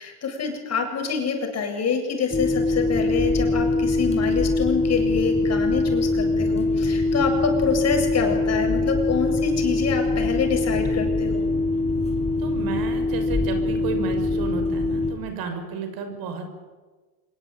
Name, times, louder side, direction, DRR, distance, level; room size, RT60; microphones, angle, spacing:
voice 1, 0.0-11.5, left 6 dB, 35° left, 4 dB, 8.0 m, -26 dB
sound 1, 2.3-15.1, left 2 dB, 15° left, 6.5 m, -23 dB
voice 2, 12.4-16.5, right 5 dB, 50° right, 7 dB, 6.4 m, -32 dB
26.0 x 23.0 x 9.3 m, 1.3 s
hypercardioid pair, 95°, 46 cm